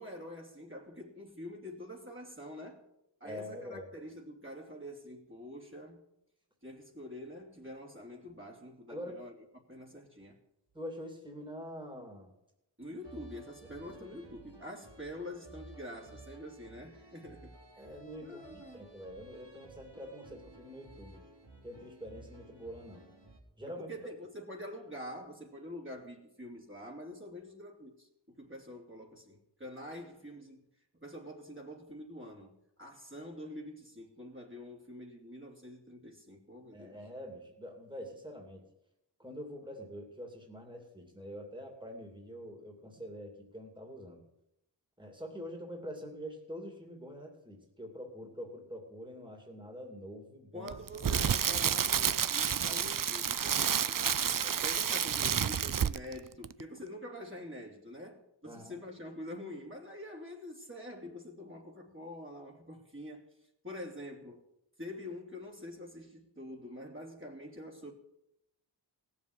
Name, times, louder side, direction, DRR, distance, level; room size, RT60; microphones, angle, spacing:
voice 1, 0.0-2.8 3.2-6.0 6.6-9.3 9.7-10.4 12.8-17.9 18.2-18.8 23.8-30.6 31.0-37.0 50.5-54.1 54.4-63.2 63.6-64.4 64.8-67.9, left 1 dB, 30° right, 2.9 m, -46 dB
voice 2, 3.2-3.9 8.9-9.2 10.7-12.3 14.0-14.2 17.8-21.2 21.6-23.0 23.6-23.9 36.7-38.6 39.2-44.2 45.0-50.7 52.1-52.2 58.4-58.8, equal, 10° right, 2.8 m, -45 dB
sound 1, 13.0-23.4, right 2 dB, 70° right, 3.0 m, -55 dB
Crackle, 50.7-56.2 56.4-56.6, right 8 dB, 50° right, 0.5 m, -30 dB
18.0 x 7.4 x 9.7 m
wide cardioid pair, 60°, 44 cm